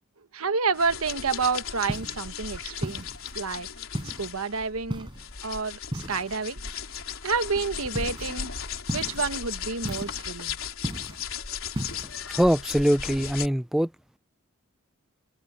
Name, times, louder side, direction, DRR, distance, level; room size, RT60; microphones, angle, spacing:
voice 1, 0.3-3.1 3.3-3.7 4.2-5.1 5.4-6.6 7.2-8.5 8.9-10.6, right 5 dB, 90° right, 1.2 m, -29 dB
sound 1, 0.7-13.5, left 7 dB, 75° left, 3.6 m, -36 dB
sound 2, 1.9-2.3 2.8-3.4 3.9-4.3 4.9-5.3 5.9-6.4 7.9-8.3 8.9-9.3 9.8-10.3 10.8-11.3 11.7-12.1, equal, 20° right, 5.8 m, -35 dB
voice 2, 12.3-13.9, equal, ahead, 0.3 m, -22 dB
head